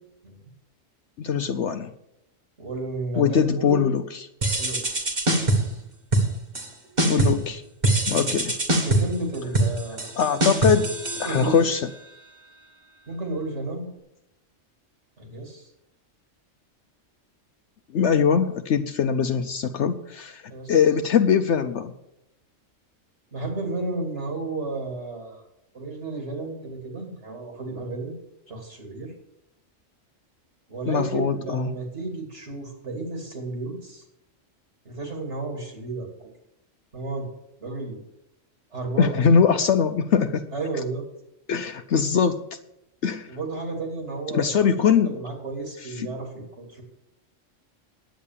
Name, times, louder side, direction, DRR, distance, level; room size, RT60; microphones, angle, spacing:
voice 1, 1.2-1.9 3.2-4.3 7.0-7.6 8.1-8.5 10.2-10.9 11.2-11.9 17.9-20.4 20.7-21.9 30.9-31.7 39.0-40.4 41.5-42.4 43.0-43.3 44.3-45.1 46.0-46.1, left 7 dB, 65° left, 8 dB, 0.9 m, -22 dB
voice 2, 2.6-3.9 4.6-5.8 6.8-6.9 8.1-8.5 8.8-10.1 11.2-11.6 13.1-13.9 15.2-15.7 20.5-20.8 23.3-25.4 25.7-28.2 28.5-29.1 30.7-34.0 34.8-36.3 36.9-37.3 37.6-38.0 38.7-39.2 40.5-41.0 43.3-44.6 45.0-46.8, right 3 dB, 60° right, 2 dB, 2.7 m, -32 dB
sound 1, 4.4-5.8 6.1-6.7 7.0-7.5 7.8-11.8, right 2 dB, 35° right, 1.6 m, -24 dB
10.5 x 8.3 x 7.2 m, 0.84 s
omnidirectional pair, 1.3 m